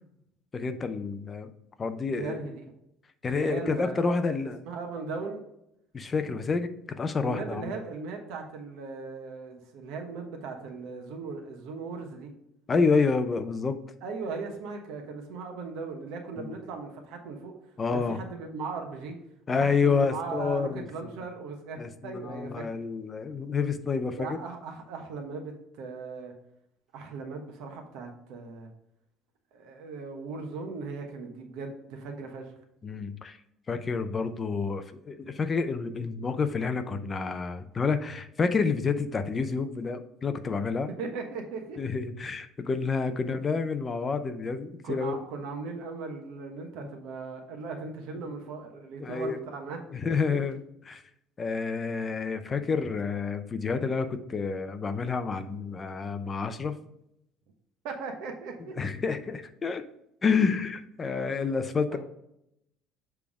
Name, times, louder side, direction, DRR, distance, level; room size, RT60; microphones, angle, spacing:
voice 1, 0.5-1.5 1.8-2.4 3.2-4.6 5.9-7.7 12.7-13.8 16.4-16.5 17.8-18.2 19.5-21.1 21.8-24.4 32.8-33.4 33.7-40.9 41.8-45.2 46.8-46.9 48.2-48.3 49.0-49.4 49.9-50.6 50.9-51.0 51.4-56.7 58.8-59.8 60.2-62.0, left 4 dB, 20° left, 9 dB, 0.4 m, -29 dB
voice 2, 2.1-2.7 3.3-5.4 7.2-12.3 14.0-17.5 17.9-19.2 19.5-21.8 22.0-22.6 24.2-26.3 26.9-28.7 29.5-32.5 40.9-41.8 43.1-43.4 44.8-49.8 50.2-50.4 57.8-58.7 61.9-62.0, right 4 dB, 70° right, 3 dB, 1.1 m, -38 dB
7.2 x 3.5 x 4.8 m, 0.79 s
cardioid pair, 175°, 0 cm